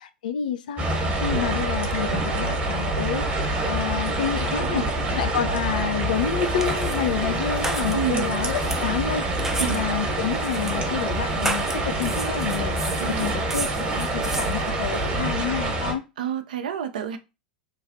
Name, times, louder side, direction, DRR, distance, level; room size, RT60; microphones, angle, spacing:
voice 1, 0.2-4.9 5.2-12.8 13.2-16.0, left 9 dB, 65° left, 0.4 m, -29 dB
sound 1, 0.8-15.9, right 2 dB, 30° right, 1.0 m, -26 dB
sound 2, 6.0-13.7, left 3 dB, 20° left, 0.7 m, -39 dB
sound 3, 6.1-15.3, right 2 dB, 10° right, 0.5 m, -35 dB
voice 2, 7.9-8.3 9.6-9.8 13.0-13.4 15.6-15.9 16.2-17.2, right 8 dB, 65° right, 0.5 m, -29 dB
3.1 x 2.4 x 2.5 m
figure-of-eight pair, 85°, 5 cm